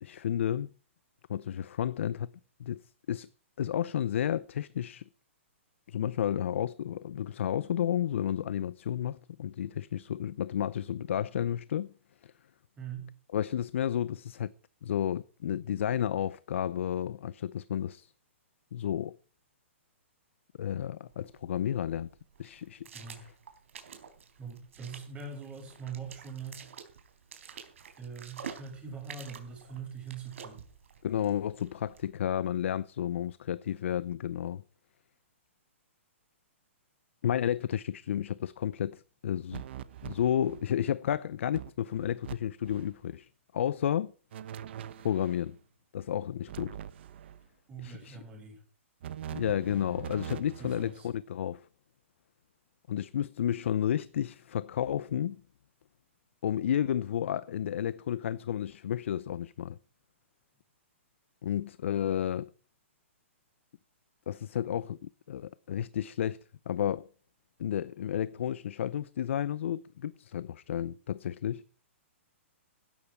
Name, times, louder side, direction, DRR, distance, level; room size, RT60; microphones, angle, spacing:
voice 1, 0.0-0.7 1.3-2.3 2.6-2.8 3.1-3.3 3.6-5.0 5.9-11.9 12.2-12.3 13.3-14.5 14.8-18.1 18.7-19.2 20.6-22.1 22.4-22.9 31.0-34.6 37.2-39.6 40.0-44.1 45.0-45.6 45.9-46.8 47.8-48.2 49.3-51.7 52.9-55.4 56.4-59.8 61.4-62.5 64.3-66.4 66.7-67.1 67.6-71.6, left 10 dB, 65° left, 0.6 m, -32 dB
voice 2, 12.8-13.1 22.9-23.2 24.4-26.7 28.0-30.6 47.7-48.6 50.6-51.1, right 6 dB, 15° right, 7.1 m, -42 dB
puddle footsteps, 21.1-32.1, right 7 dB, 75° right, 4.0 m, -49 dB
sound 1, 39.5-40.7 41.1-41.2 41.5-42.3 42.6-42.9 44.3-45.4 46.5-47.5 49.0-51.0, right 10 dB, 55° right, 1.1 m, -43 dB
15.5 x 12.5 x 4.7 m
hypercardioid pair, 150°, 7 cm